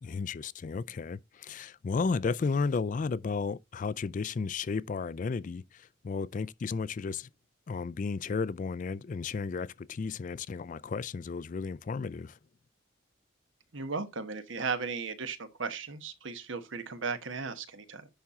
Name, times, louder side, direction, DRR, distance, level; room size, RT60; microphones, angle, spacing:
voice 1, 0.0-7.3 7.7-12.4, left 4 dB, 40° left, 0.3 m, -33 dB
voice 2, 13.7-18.1, right 4 dB, 75° right, 1.1 m, -36 dB
10.5 x 4.3 x 3.6 m
head